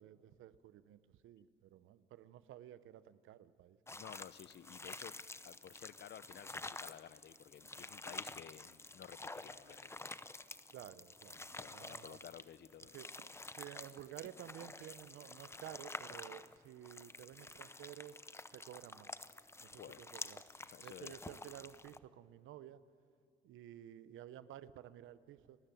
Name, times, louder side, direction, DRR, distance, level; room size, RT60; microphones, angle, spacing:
voice 1, 0.0-4.0 10.7-12.2 12.9-18.2 18.5-19.1 19.6-20.4 20.8-22.8 23.4-25.6, right 12 dB, 85° right, 0.9 m, -53 dB
sound 1, 3.9-22.0, left 2 dB, 15° left, 0.8 m, -49 dB
voice 2, 4.0-5.2 5.4-9.9 11.6-12.9 19.6-20.0 20.6-21.1, left 10 dB, 60° left, 0.8 m, -54 dB
30.0 x 13.5 x 9.2 m
cardioid pair, 90°, 20 cm